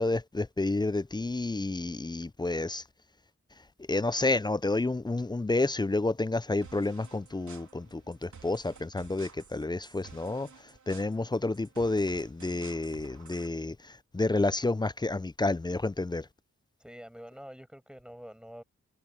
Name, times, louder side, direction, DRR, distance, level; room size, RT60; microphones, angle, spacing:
voice 1, 0.0-2.8 3.9-10.5 10.9-16.3, left 2 dB, 15° left, 0.4 m, -30 dB
sound 1, 6.6-13.5, right 5 dB, 80° right, 3.3 m, -52 dB
voice 2, 16.8-18.6, equal, 5° right, 7.0 m, -46 dB
wide cardioid pair, 90°, 29 cm